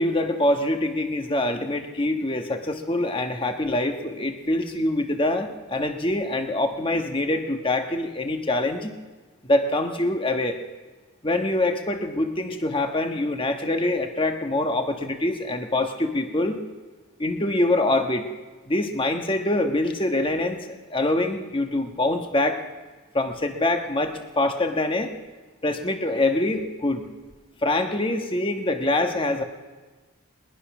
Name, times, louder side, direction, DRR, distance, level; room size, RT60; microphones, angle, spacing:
voice 1, 0.0-9.0 9.4-10.6 11.2-16.6 17.2-18.3 18.7-22.6 23.1-25.1 25.6-27.1 27.6-29.4, left 1 dB, 25° left, 5 dB, 1.3 m, -24 dB
21.0 x 20.5 x 6.1 m, 1.3 s
head